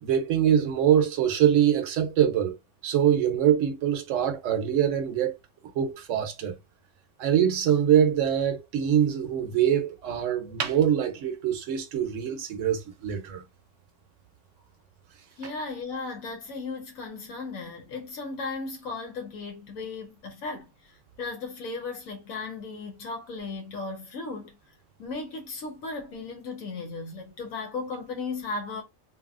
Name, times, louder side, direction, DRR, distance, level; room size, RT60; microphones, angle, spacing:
voice 1, 0.0-2.5 2.8-5.3 5.8-6.5 7.2-13.4, right 9 dB, 70° right, 1.0 m, -24 dB
voice 2, 15.4-24.6 25.0-28.8, left 3 dB, 80° left, 1.2 m, -36 dB
2.8 x 2.6 x 2.4 m
omnidirectional pair, 1.4 m